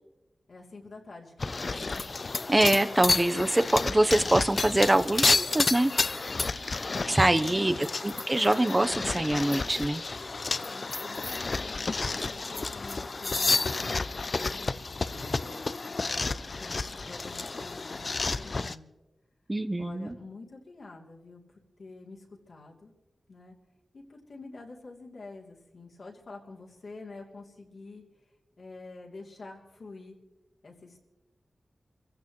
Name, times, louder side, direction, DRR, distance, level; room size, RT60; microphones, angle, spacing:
voice 1, 0.5-2.0 7.3-7.8 10.7-14.1 14.5-18.9 19.8-22.9 23.3-23.6 23.9-28.0 28.6-30.2 30.6-31.0, left 3 dB, 70° left, -2 dB, 3.0 m, -47 dB
sound 1, 1.4-18.8, left 3 dB, 50° left, 0.5 m, -31 dB
voice 2, 2.5-5.9 7.1-10.0 19.5-20.1, right 1 dB, 20° right, 10 dB, 0.8 m, -24 dB
27.5 x 15.5 x 3.1 m, 1.0 s
wide cardioid pair, 90°, 0 cm